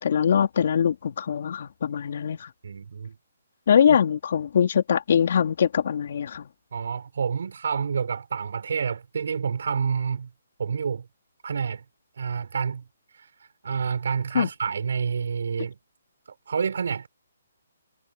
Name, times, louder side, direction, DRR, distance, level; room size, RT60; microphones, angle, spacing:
voice 1, 0.0-2.5 3.7-6.4 14.3-14.5, left 8 dB, 55° left, 3.9 m, -22 dB
voice 2, 2.6-3.2 6.7-10.3 10.6-11.1 11.4-11.8 12.2-12.8 13.1-15.8 16.5-17.1, right 6 dB, 65° right, 7.3 m, -28 dB
hypercardioid pair, 160°, 0 cm